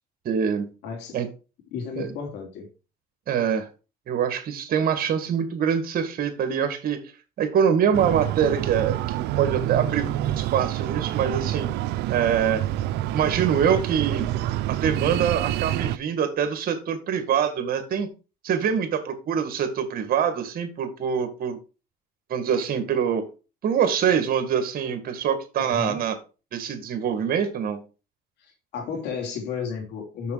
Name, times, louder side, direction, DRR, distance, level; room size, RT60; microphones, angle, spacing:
voice 1, 0.3-0.7 1.1-1.3 2.0-2.1 3.3-3.7 4.1-7.0 7.4-10.1 10.4-11.7 12.1-12.6 13.1-14.3 14.7-18.1 18.4-21.6 22.3-23.2 23.6-26.2 26.5-27.8, right 8 dB, 60° right, 9 dB, 1.9 m, -24 dB
voice 2, 0.8-1.2 1.7-2.7 25.5-26.0 28.4-30.3, left 6 dB, 85° left, 3 dB, 3.2 m, -33 dB
Breathing, 7.9-16.0, right 14 dB, 85° right, 0.5 m, -27 dB
6.8 x 6.8 x 4.7 m, 0.32 s
cardioid pair, 110°, 17 cm